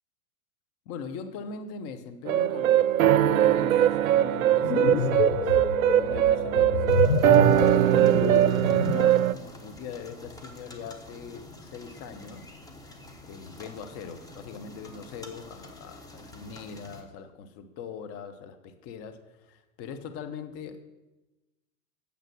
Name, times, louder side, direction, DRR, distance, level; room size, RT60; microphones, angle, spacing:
voice 1, 0.9-5.6 5.9-8.1 8.7-12.5 13.2-20.8, left 6 dB, 35° left, 8 dB, 1.0 m, -41 dB
Horror Background Music, 2.3-9.3, right 12 dB, 70° right, 0.5 m, -21 dB
sound 1, 4.4-9.2, left 5 dB, 70° left, 0.9 m, -28 dB
sound 2, 6.9-17.0, left 1 dB, 10° left, 1.1 m, -48 dB
9.0 x 6.9 x 6.1 m, 1.1 s
figure-of-eight pair, 95°, 43 cm